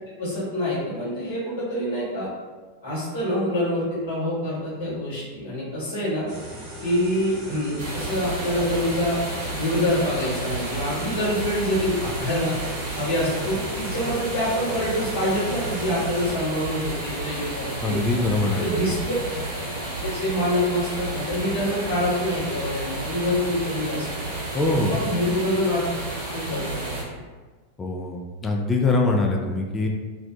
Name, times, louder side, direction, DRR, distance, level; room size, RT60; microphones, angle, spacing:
voice 1, 0.2-2.3 2.8-6.3 6.8-9.2 9.5-18.0 18.6-19.4 20.0-24.1 24.8-25.9 26.3-26.6, left 1 dB, 60° left, -8 dB, 1.3 m, -26 dB
sound 1, 6.3-16.3, equal, 40° right, 1.0 m, -38 dB
sound 2, 7.8-27.0, right 2 dB, 60° right, 0.6 m, -31 dB
voice 2, 17.8-18.9 24.5-24.9 27.8-29.9, left 2 dB, 15° left, -1 dB, 0.3 m, -23 dB
2.6 x 2.1 x 2.3 m, 1.4 s
figure-of-eight pair, 90°, 0 cm